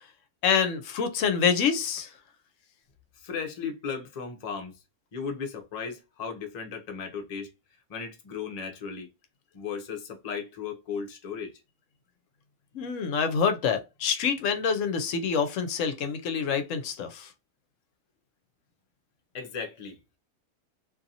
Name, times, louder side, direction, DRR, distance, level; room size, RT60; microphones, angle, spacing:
voice 1, 0.4-2.1 12.7-17.3, left 6 dB, 65° left, 0.9 m, -26 dB
voice 2, 3.2-4.7 5.1-7.5 7.9-9.1 9.5-11.5 19.3-20.0, left 6 dB, 45° left, 0.5 m, -36 dB
2.6 x 2.6 x 2.7 m
omnidirectional pair, 1.6 m